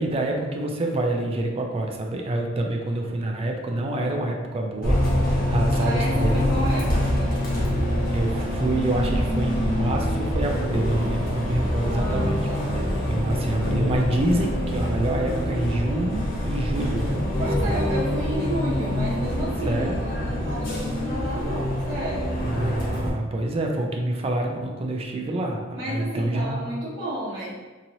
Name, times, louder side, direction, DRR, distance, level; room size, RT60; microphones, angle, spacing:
voice 1, 0.0-6.7 8.1-17.2 17.6-17.7 19.7-20.0 22.4-26.6, right 1 dB, 30° right, 1 dB, 0.3 m, -27 dB
Bus, 4.8-23.1, left 1 dB, 50° left, 0.8 m, -25 dB
voice 2, 5.8-7.3 11.8-12.7 17.4-22.4 25.7-27.5, equal, 75° right, -12 dB, 0.8 m, -31 dB
3.0 x 2.7 x 2.6 m, 1.3 s
head